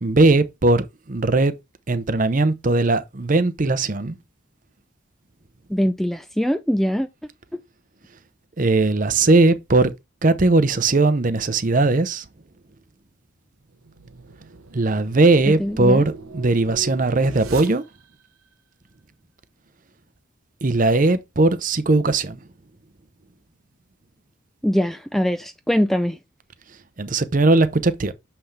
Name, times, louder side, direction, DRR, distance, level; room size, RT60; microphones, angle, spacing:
voice 1, 0.0-1.5 1.9-4.2 8.6-9.9 10.2-12.3 14.7-17.8 20.6-22.4 27.0-28.1, right 2 dB, 40° right, 0.7 m, -19 dB
voice 2, 5.7-7.1 15.6-16.1 24.6-26.2, equal, ahead, 0.3 m, -22 dB
sound 1, 13.7-18.3, right 3 dB, 90° right, 1.0 m, -40 dB
7.0 x 5.7 x 3.2 m
head